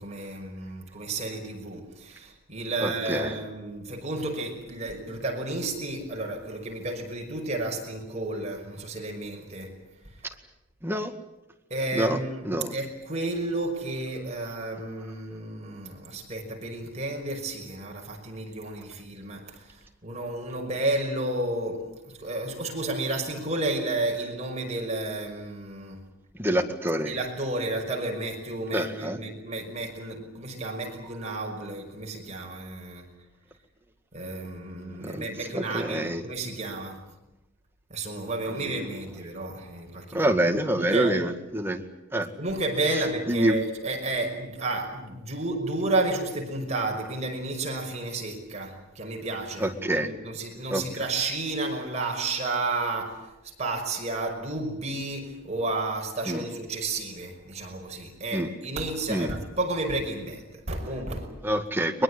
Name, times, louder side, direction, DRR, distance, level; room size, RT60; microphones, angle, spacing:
voice 1, 0.0-9.8 11.7-19.6 20.0-21.9 22.2-26.0 27.0-33.1 34.1-37.1 37.9-40.4 40.7-41.1 42.4-53.3 53.6-61.3, right 2 dB, 30° right, 5.7 m, -32 dB
voice 2, 2.8-3.4 10.8-11.1 11.9-12.2 12.4-12.7 26.4-27.1 28.7-29.2 35.0-35.3 35.5-36.2 40.1-41.8 42.1-42.3 43.3-43.6 49.6-50.1 50.7-50.8 56.3-56.5 58.3-58.5 59.1-59.4 61.4-62.0, right 1 dB, 10° right, 2.0 m, -26 dB
22.5 x 22.0 x 9.9 m
head